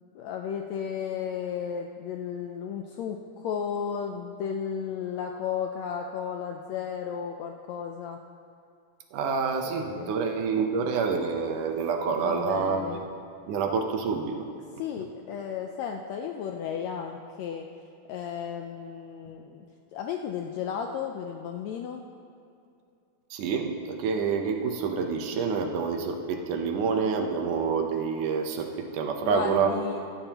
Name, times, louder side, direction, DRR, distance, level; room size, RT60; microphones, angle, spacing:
voice 1, 0.1-8.2 9.9-10.1 12.1-13.0 14.8-17.7 18.1-19.6 19.9-22.0 29.2-30.0, left 7 dB, 80° left, 3 dB, 1.6 m, -34 dB
voice 2, 9.1-12.8 13.5-14.5 15.0-15.1 23.3-29.7, right 5 dB, 80° right, 3 dB, 2.4 m, -27 dB
17.0 x 12.5 x 3.0 m, 2.5 s
omnidirectional pair, 3.7 m